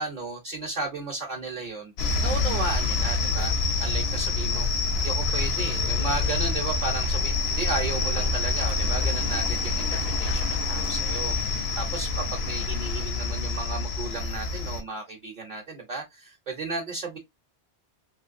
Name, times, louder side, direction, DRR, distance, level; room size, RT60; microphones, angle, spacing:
voice 1, 0.0-1.9 2.2-4.7 5.0-17.2, right 3 dB, 50° right, 0.8 m, -34 dB
sound 1, 2.0-14.8, left 3 dB, 70° left, 0.9 m, -26 dB
3.1 x 3.1 x 2.5 m
omnidirectional pair, 1.1 m